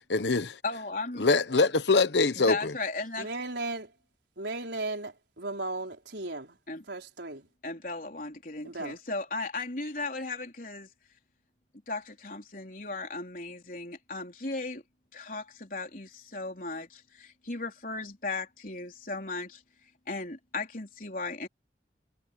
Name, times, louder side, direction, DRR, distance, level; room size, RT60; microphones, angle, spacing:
voice 1, 0.1-0.6 1.2-2.7, left 3 dB, 75° left, 1.0 m, -24 dB
voice 2, 0.6-1.3 2.4-3.3 6.7-6.8 7.6-10.9 11.9-14.8 15.1-19.6 20.1-21.5, left 3 dB, 50° left, 4.2 m, -36 dB
voice 3, 3.2-3.9 4.4-6.6 6.9-7.5 8.6-9.0, right 2 dB, 75° right, 4.4 m, -36 dB
head